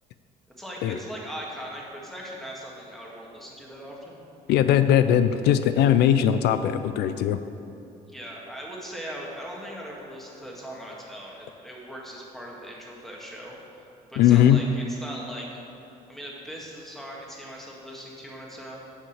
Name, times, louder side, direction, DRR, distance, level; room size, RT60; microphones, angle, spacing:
voice 1, 0.6-4.2 8.0-13.6 14.1-15.5 16.1-18.8, equal, ahead, -3 dB, 1.9 m, -39 dB
voice 2, 4.5-7.4 14.2-14.6, left 10 dB, 75° left, 11 dB, 0.4 m, -19 dB
8.4 x 5.4 x 7.3 m, 2.8 s
cardioid pair, 110°, 17 cm